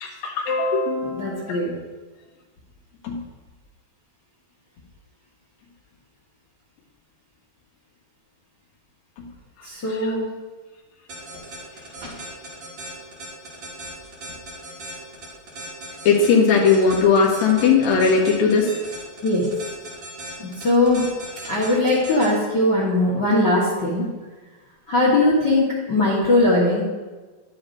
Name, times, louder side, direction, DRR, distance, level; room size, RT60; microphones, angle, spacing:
voice 1, 0.0-1.5 3.0-3.2 9.9-10.1 12.0-12.1 16.0-18.7, left 5 dB, 75° left, -2 dB, 3.3 m, -19 dB
voice 2, 1.1-1.7 9.6-10.3 19.2-19.4 20.4-21.0 21.5-24.0 24.9-26.8, left 2 dB, 55° left, -6 dB, 1.2 m, -20 dB
sound 1, 11.1-22.3, right 2 dB, 50° right, 3.3 m, -37 dB
11.5 x 9.6 x 2.7 m, 1.3 s
omnidirectional pair, 4.4 m